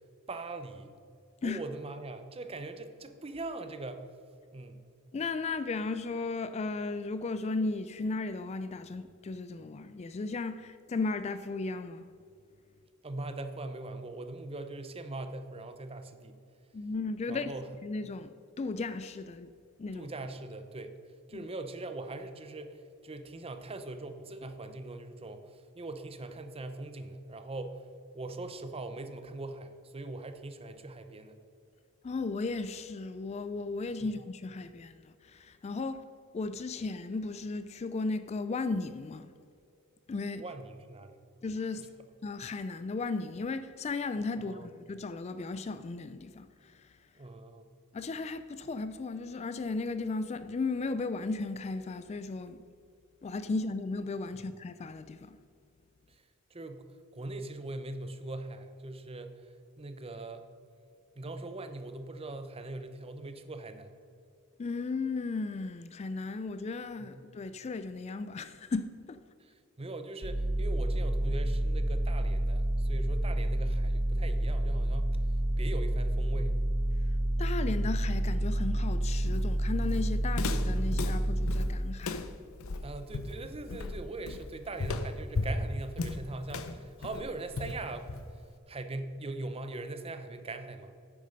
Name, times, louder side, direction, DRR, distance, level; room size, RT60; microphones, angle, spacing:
voice 1, 0.3-0.9 1.4-4.0 4.5-4.9 13.0-16.4 17.3-17.7 19.9-20.9 21.3-27.8 28.1-31.4 34.0-34.1 40.4-41.2 41.8-41.9 44.4-44.7 47.2-47.7 56.5-56.8 57.1-60.5 61.2-64.0 67.0-67.2 69.4-75.2 75.6-76.6 82.8-88.1 88.7-91.0, right 2 dB, 25° right, 0.7 m, -41 dB
voice 2, 5.1-12.0 16.7-17.5 17.8-19.5 19.8-20.1 21.3-21.4 32.0-36.1 36.3-39.3 40.1-40.4 41.4-41.9 42.2-46.8 47.9-52.6 53.2-55.4 64.6-69.2 77.4-82.3, left 3 dB, 30° left, 0.3 m, -35 dB
sound 1, 70.2-81.7, right 1 dB, 85° right, 1.6 m, -29 dB
Walk footsteps, 79.3-88.5, left 2 dB, 65° left, 0.6 m, -36 dB
9.7 x 8.5 x 5.2 m
head